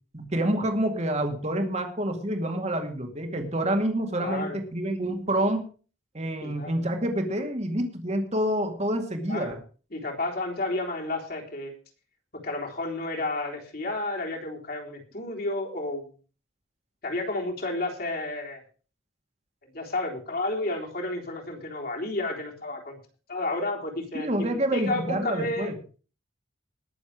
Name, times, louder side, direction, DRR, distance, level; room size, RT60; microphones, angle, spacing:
voice 1, 0.1-5.6 6.1-9.6 24.1-25.7, right 1 dB, 35° right, 5 dB, 2.2 m, -27 dB
voice 2, 4.2-4.6 6.4-6.7 9.2-9.6 9.9-11.7 12.3-16.1 17.0-18.6 19.7-23.0 23.3-25.7, left 2 dB, 50° left, 0 dB, 3.7 m, -31 dB
20.5 x 7.2 x 4.9 m, 0.37 s
head